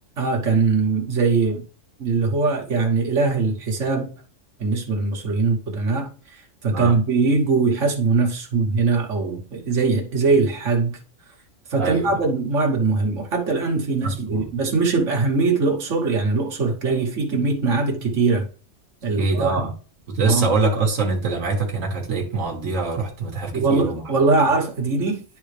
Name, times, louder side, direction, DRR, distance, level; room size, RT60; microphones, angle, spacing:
voice 1, 0.2-1.6 2.0-4.1 4.6-11.0 11.7-18.5 19.0-19.5 20.3-20.5 23.5-25.2, right 4 dB, 70° right, 1.7 m, -21 dB
voice 2, 11.8-12.1 14.0-14.5 19.2-19.7 20.1-24.0 24.4-24.5, right 3 dB, 85° right, 1.7 m, -24 dB
11.0 x 3.7 x 3.3 m
omnidirectional pair, 1.3 m